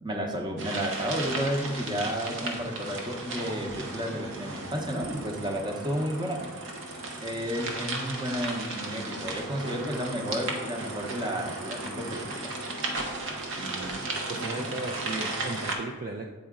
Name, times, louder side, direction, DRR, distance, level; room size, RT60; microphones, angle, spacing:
voice 1, 0.0-6.5 7.1-12.5, equal, 20° right, 2 dB, 0.8 m, -32 dB
sound 1, 0.6-15.7, right 2 dB, 65° right, 1.0 m, -35 dB
voice 2, 13.6-16.3, right 3 dB, 40° right, 2 dB, 0.5 m, -36 dB
8.4 x 4.2 x 3.6 m, 1.2 s
head